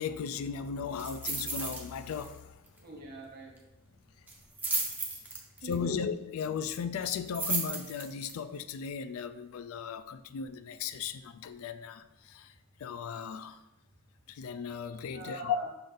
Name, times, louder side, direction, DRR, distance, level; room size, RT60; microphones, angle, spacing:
voice 1, 0.0-2.5 5.6-12.5 12.8-13.6 14.3-15.6, left 7 dB, 70° left, 0.3 m, -36 dB
sound 1, 1.0-1.8 2.1-2.4 2.7-2.8 4.3-5.7 7.0-8.3 8.8-8.9, right 3 dB, 10° right, 0.5 m, -34 dB
voice 2, 2.8-3.5 5.5-6.0 14.9-15.7, right 1 dB, 45° right, 1.1 m, -43 dB
5.3 x 2.5 x 3.8 m
head